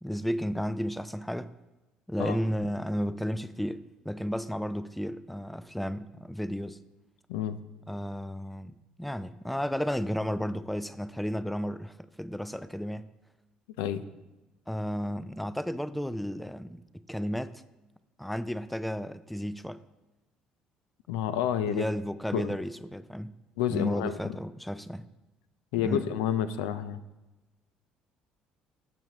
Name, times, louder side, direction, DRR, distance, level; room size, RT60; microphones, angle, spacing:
voice 1, 0.0-1.5 2.1-6.8 7.9-13.1 14.7-17.6 18.2-19.8 21.7-23.3 23.7-25.1 25.8-26.0, equal, ahead, 0.4 m, -33 dB
voice 2, 7.3-7.6 13.8-14.1 21.1-21.8 22.3-22.6 23.6-24.4 25.7-27.0, left 10 dB, 80° left, 0.4 m, -29 dB
14.0 x 6.0 x 2.8 m
hypercardioid pair, 60°, 3 cm